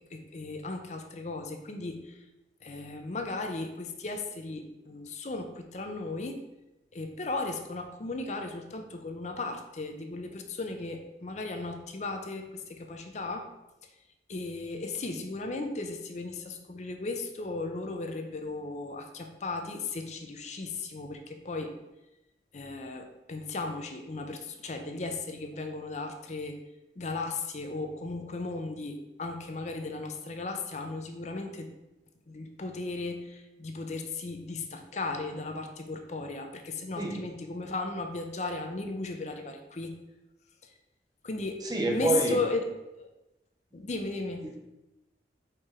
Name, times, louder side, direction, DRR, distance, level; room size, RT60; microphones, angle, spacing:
voice 1, 0.1-2.2 2.6-6.4 6.9-13.5 14.3-21.8 22.5-26.6 27.0-31.7 32.3-40.0 40.6-40.7 41.2-41.6 41.9-42.7 43.0-43.1 43.7-44.5, left 3 dB, 40° left, 5 dB, 0.6 m, -36 dB
voice 2, 41.6-42.4 44.4-44.6, right 2 dB, 25° right, 2 dB, 0.7 m, -27 dB
4.6 x 4.5 x 4.9 m, 0.94 s
head